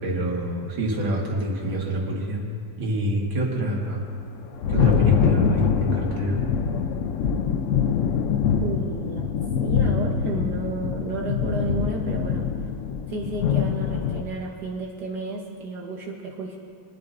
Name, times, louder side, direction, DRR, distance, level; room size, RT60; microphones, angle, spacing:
voice 1, 0.0-2.4 2.8-4.0 4.7-6.4, right 1 dB, 90° right, -2 dB, 2.6 m, -26 dB
Thunder, 4.1-14.2, left 7 dB, 85° left, 0.6 m, -24 dB
voice 2, 8.6-9.3 9.6-12.5 13.1-16.6, right 3 dB, 60° right, -1 dB, 1.6 m, -32 dB
23.0 x 11.0 x 2.6 m, 2.4 s
omnidirectional pair, 2.1 m